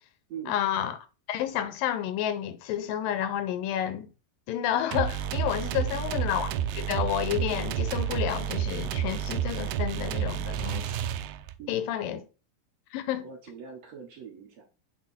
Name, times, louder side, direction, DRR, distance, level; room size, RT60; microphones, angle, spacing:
voice 1, 0.5-1.0 1.3-4.1 4.5-10.9 11.7-12.2 12.9-13.3, left 11 dB, 80° left, 2.3 m, -30 dB
sound 1, 4.9-11.6, right 10 dB, 80° right, 2.1 m, -30 dB
voice 2, 5.6-6.1 11.6-12.2 13.2-14.6, right 7 dB, 60° right, 2.0 m, -43 dB
7.5 x 3.8 x 4.1 m
omnidirectional pair, 4.1 m